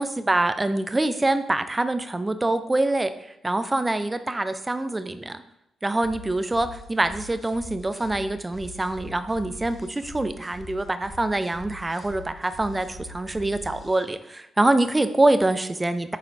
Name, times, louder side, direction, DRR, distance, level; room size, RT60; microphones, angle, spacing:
voice 1, 0.0-3.1 3.4-5.4 5.8-16.2, right 2 dB, 25° right, 10 dB, 0.5 m, -25 dB
sound 1, 6.0-14.0, left 1 dB, 40° left, 2.3 m, -43 dB
9.4 x 4.1 x 2.7 m, 0.83 s
hypercardioid pair, 45°, 0 cm